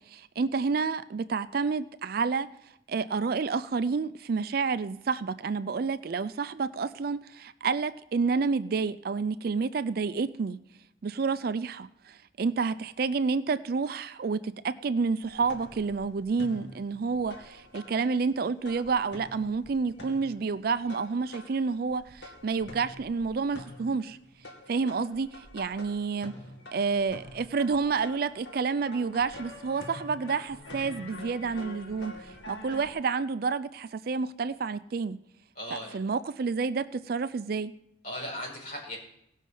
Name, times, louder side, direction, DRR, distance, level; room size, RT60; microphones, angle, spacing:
voice 1, 0.0-2.5 2.9-10.6 11.0-24.2 24.7-26.3 26.7-35.2 35.7-37.7, right 4 dB, 50° right, 14 dB, 0.4 m, -29 dB
sound 1, 15.2-18.4 18.6-32.9, left 1 dB, 70° left, 2.1 m, -47 dB
voice 2, 35.5-36.1 38.0-39.0, left 1 dB, 45° left, -2 dB, 4.9 m, -38 dB
17.0 x 6.3 x 5.5 m, 0.79 s
head